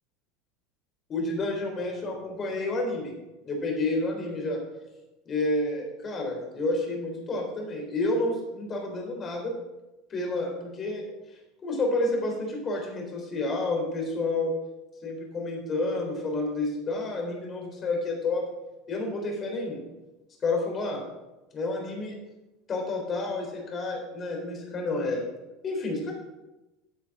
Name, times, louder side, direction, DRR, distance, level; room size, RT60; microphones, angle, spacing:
voice 1, 1.1-3.1 3.4-4.6 5.3-9.5 10.1-11.1 11.6-14.5 15.0-18.5 18.9-19.8 20.4-21.0 21.5-22.2 22.7-25.2 25.6-26.1, left 2 dB, 30° left, 1 dB, 3.6 m, -30 dB
14.0 x 8.3 x 3.7 m, 1.0 s
supercardioid pair, 140°, 0 cm